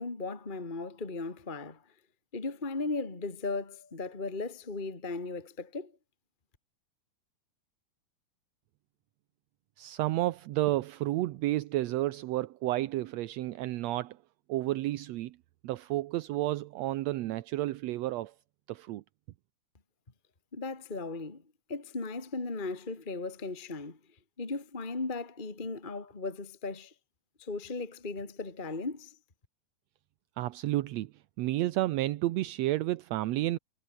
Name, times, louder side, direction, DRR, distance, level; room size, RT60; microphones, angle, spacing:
voice 1, 0.0-1.8 2.3-5.9 20.5-21.4 21.7-24.0 24.4-26.9 27.4-29.1, left 3 dB, 15° left, 2.3 m, -37 dB
voice 2, 9.8-14.2 14.5-15.4 15.6-18.3 18.7-19.0 30.4-31.1 31.4-33.6, right 16 dB, 75° right, 1.7 m, -31 dB
omnidirectional pair, 3.7 m